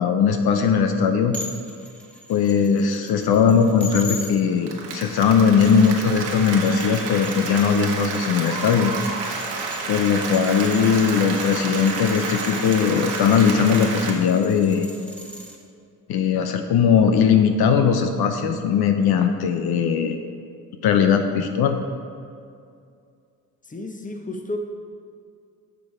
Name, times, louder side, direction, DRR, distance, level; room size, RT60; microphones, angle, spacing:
voice 1, 0.0-1.3 2.3-8.9 9.9-14.9 16.1-20.2 20.8-21.8, left 6 dB, 65° left, 6 dB, 0.7 m, -19 dB
sound 1, 1.3-4.3 5.4-15.6, left 1 dB, 5° left, 1.3 m, -40 dB
Applause, 4.4-14.1, right 4 dB, 80° right, 1.3 m, -30 dB
voice 2, 23.7-24.6, left 2 dB, 20° left, 5 dB, 0.9 m, -32 dB
6.9 x 6.8 x 4.8 m, 2.4 s
supercardioid pair, 70°, 40 cm